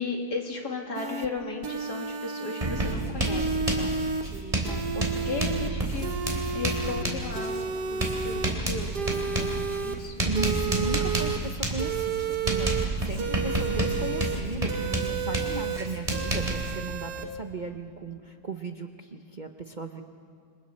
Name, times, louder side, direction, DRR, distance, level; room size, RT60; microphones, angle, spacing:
voice 1, 0.0-3.9 4.2-6.1 6.5-10.1, left 3 dB, 70° left, 1 dB, 3.0 m, -36 dB
sound 1, 1.0-1.3 1.6-3.0 3.2-4.2 4.6-5.7 6.0-7.1 7.4-8.5 8.9-10.0 10.4-11.4 11.8-12.9 13.2-14.4 14.7-15.8 16.1-17.3, right 5 dB, 75° right, 1.7 m, -32 dB
Writing, 2.6-16.7, right 2 dB, 20° right, 3.4 m, -30 dB
voice 2, 10.2-20.0, right 3 dB, 40° right, 4 dB, 0.8 m, -36 dB
29.5 x 27.0 x 4.3 m, 2.1 s
omnidirectional pair, 1.8 m